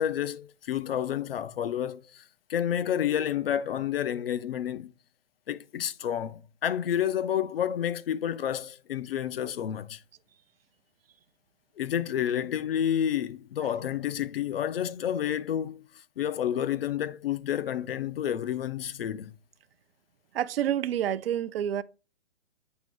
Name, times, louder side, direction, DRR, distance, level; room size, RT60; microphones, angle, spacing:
voice 1, 0.0-2.2 2.5-4.9 5.5-10.0 11.8-15.9 16.2-19.3, left 10 dB, 55° left, 0.6 m, -30 dB
voice 2, 20.3-21.8, right 10 dB, 60° right, 0.6 m, -28 dB
8.0 x 3.0 x 5.2 m
hypercardioid pair, 135°, 34 cm